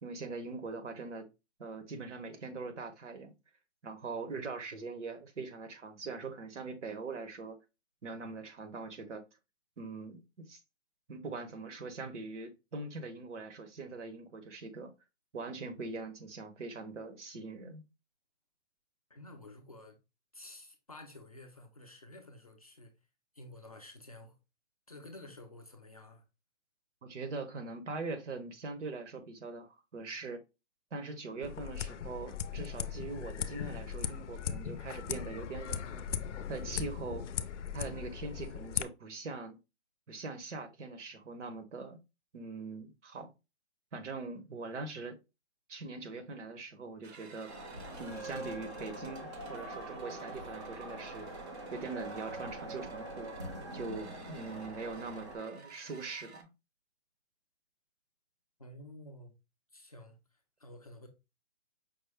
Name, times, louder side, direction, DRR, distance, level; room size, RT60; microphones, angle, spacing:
voice 1, 0.0-1.3 1.6-3.3 3.8-7.6 8.0-9.2 9.8-10.6 11.1-14.9 15.3-17.8 27.0-30.4 30.9-36.0 36.5-37.3 37.7-39.6 40.1-42.0 42.3-43.3 43.9-45.2 45.7-47.5 48.0-51.3 51.7-53.3 53.7-56.5, right 3 dB, 80° right, 1.1 m, -42 dB
voice 2, 19.1-20.0 20.3-22.9 23.3-24.4 24.9-26.2 58.6-59.4 59.7-60.2 60.6-61.1, left 1 dB, 35° left, 0.4 m, -51 dB
sound 1, 31.4-38.8, left 8 dB, 85° left, 0.5 m, -38 dB
sound 2, 47.0-56.4, right 5 dB, 65° right, 0.8 m, -54 dB
sound 3, 47.5-55.4, right 1 dB, 25° right, 0.5 m, -44 dB
5.2 x 2.0 x 3.3 m
hypercardioid pair, 175°, 35 cm